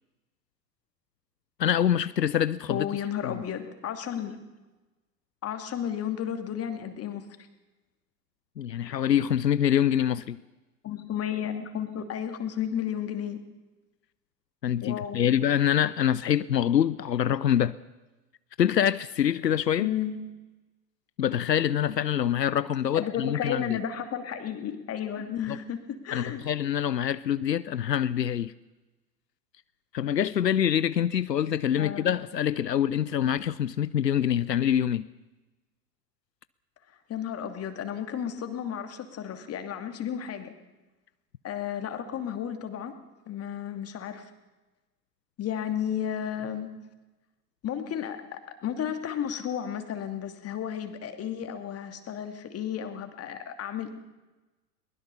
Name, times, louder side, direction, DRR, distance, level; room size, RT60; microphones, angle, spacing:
voice 1, 1.6-2.9 3.2-3.3 8.6-10.4 14.6-17.8 18.6-19.9 21.2-23.8 25.5-25.6 26.1-28.5 29.9-35.1, left 10 dB, 85° left, 0.7 m, -25 dB
voice 2, 2.7-4.4 5.4-7.2 10.8-13.4 14.8-15.2 19.8-20.2 22.9-26.4 31.8-32.1 37.1-40.5 41.4-42.9 43.3-44.3 45.4-46.7 47.6-53.9, left 9 dB, 30° left, 2.6 m, -33 dB
22.0 x 20.5 x 7.0 m
figure-of-eight pair, 90°, 49 cm